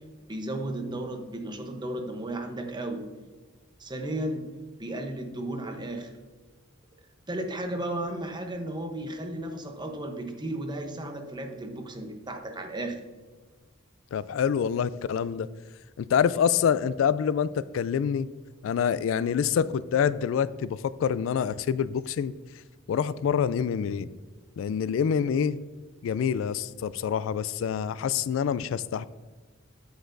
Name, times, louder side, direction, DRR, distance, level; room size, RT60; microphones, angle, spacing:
voice 1, 0.3-3.1 3.8-4.5 4.8-6.1 7.3-13.0, right 1 dB, 20° right, 4 dB, 0.9 m, -34 dB
voice 2, 14.1-15.5 16.0-18.3 18.6-22.3 22.9-24.1 24.6-25.6 26.0-29.1, left 7 dB, 75° left, 18 dB, 0.3 m, -26 dB
8.5 x 7.9 x 2.6 m, 1.3 s
head